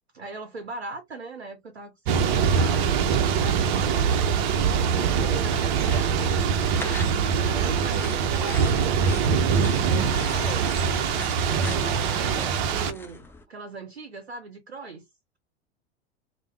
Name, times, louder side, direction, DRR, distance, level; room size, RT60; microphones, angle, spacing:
voice 1, 0.1-2.9 3.3-4.3 5.0-9.4 9.8-10.9 11.4-15.1, right 3 dB, 85° right, 0.6 m, -40 dB
Thunder / Rain, 2.1-12.9, right 6 dB, 50° right, 0.7 m, -23 dB
sound 1, 5.0-13.4, left 3 dB, 5° left, 0.4 m, -43 dB
sound 2, 7.4-12.5, left 5 dB, 80° left, 0.7 m, -43 dB
3.3 x 2.1 x 3.2 m
figure-of-eight pair, 85°, 31 cm